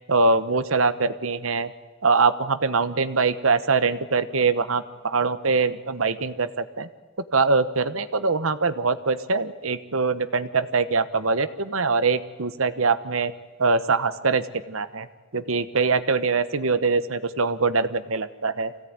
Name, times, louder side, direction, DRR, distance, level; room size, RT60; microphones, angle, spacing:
voice 1, 0.1-1.7 2.0-6.9 7.3-13.3 13.6-15.1 15.3-18.7, right 4 dB, 75° right, 13 dB, 1.1 m, -23 dB
24.5 x 17.0 x 9.6 m, 1.3 s
head